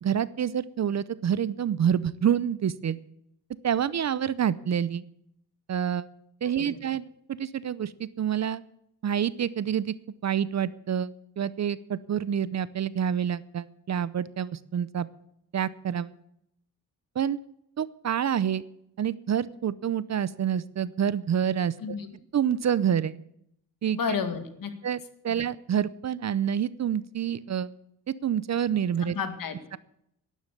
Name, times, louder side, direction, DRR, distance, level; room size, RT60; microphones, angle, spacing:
voice 1, 0.0-3.0 3.6-5.0 5.7-6.1 6.4-8.6 9.0-15.1 15.5-16.1 17.2-17.4 17.8-18.6 19.0-21.7 22.3-23.1 23.8-24.0 24.8-27.7 28.1-29.1, right 9 dB, 45° right, 18 dB, 0.7 m, -27 dB
voice 2, 23.9-24.7 25.3-25.4 29.0-29.5, left 6 dB, 60° left, 8 dB, 2.3 m, -31 dB
12.0 x 10.5 x 8.5 m, 0.74 s
cardioid pair, 120°, 39 cm